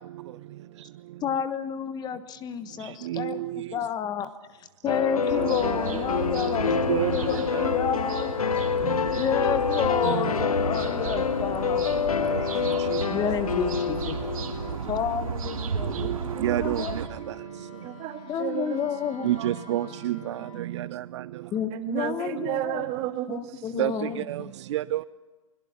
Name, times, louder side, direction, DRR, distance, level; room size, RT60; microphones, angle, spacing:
voice 1, 1.2-3.4 3.7-4.3 4.8-8.3 9.2-12.0 13.1-14.2 14.8-17.0 18.3-19.3 21.5-22.9 23.3-24.5, left 8 dB, 20° left, 1.3 m, -30 dB
voice 2, 2.8-3.8 5.2-5.8 6.7-7.7 8.8-9.1 10.0-10.3 12.3-13.2 15.8-17.7 19.2-21.5 22.4-22.5 23.7-25.0, right 14 dB, 55° right, 0.6 m, -31 dB
sound 1, 4.9-14.8, left 6 dB, 90° left, 0.9 m, -27 dB
sound 2, 5.3-17.1, right 6 dB, 75° right, 2.7 m, -34 dB
Wind instrument woodwind instrument, 7.8-20.7, equal, 70° left, 6.9 m, -48 dB
voice 3, 17.8-18.8 19.4-19.5 20.1-20.5 21.7-23.4, right 14 dB, 35° right, 2.0 m, -32 dB
24.0 x 21.5 x 5.8 m
hypercardioid pair, 125°, 18 cm